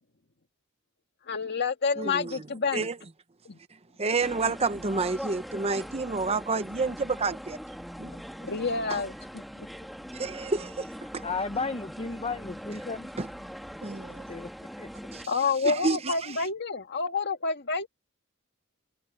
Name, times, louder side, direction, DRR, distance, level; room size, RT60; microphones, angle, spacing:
voice 1, 1.3-2.9 3.5-3.6 8.1-9.7 15.3-17.9, left 4 dB, 50° left, 2.0 m, -29 dB
voice 2, 2.0-2.4 2.7-3.0 4.0-7.6 8.0-8.1 8.9-9.0 10.1-10.9 11.1-11.2 13.2-13.3 13.8-14.2 15.1-15.2 15.6-16.3, right 4 dB, 30° right, 0.8 m, -29 dB
sound 1, 4.2-15.3, equal, ahead, 2.2 m, -41 dB
voice 3, 11.2-13.1 14.3-14.5 14.8-14.9, left 4 dB, 25° left, 0.8 m, -33 dB
head